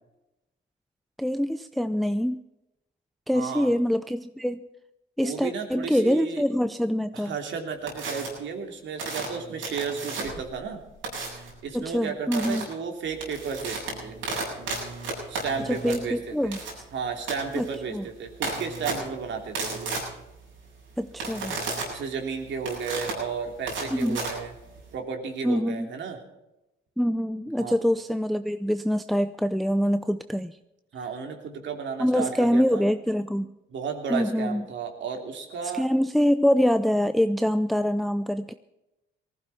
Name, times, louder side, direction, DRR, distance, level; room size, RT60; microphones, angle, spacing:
voice 1, 1.2-2.4 3.3-4.7 5.2-7.3 11.7-12.7 15.7-16.6 17.6-17.7 17.9-18.0 21.0-21.6 23.9-24.2 25.4-25.9 27.0-30.6 32.0-33.5 34.1-34.6 35.7-38.5, equal, ahead, 11 dB, 0.5 m, -25 dB
voice 2, 3.3-3.7 5.2-6.4 7.1-10.8 11.3-14.2 15.3-16.6 16.9-19.9 21.5-24.5 24.9-26.2 27.6-27.8 30.9-32.8 33.7-35.9, right 6 dB, 70° right, 3 dB, 3.1 m, -33 dB
sound 1, 7.9-8.3 9.0-10.5 11.0-11.5 12.3-12.6 13.0-24.9, right 3 dB, 85° right, 7.4 m, -34 dB
19.0 x 15.0 x 4.2 m, 0.93 s
cardioid pair, 90°, 20 cm